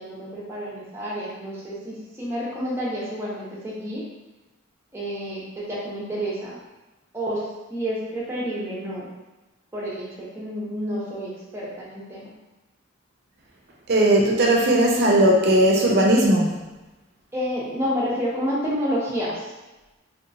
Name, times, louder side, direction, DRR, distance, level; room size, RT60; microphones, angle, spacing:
voice 1, 0.0-4.0 4.9-6.6 7.1-9.1 9.7-12.3 17.3-19.4, equal, 10° right, -7 dB, 0.8 m, -29 dB
voice 2, 13.9-16.5, right 1 dB, 50° right, -1 dB, 0.6 m, -17 dB
3.2 x 2.9 x 2.6 m, 1.1 s
head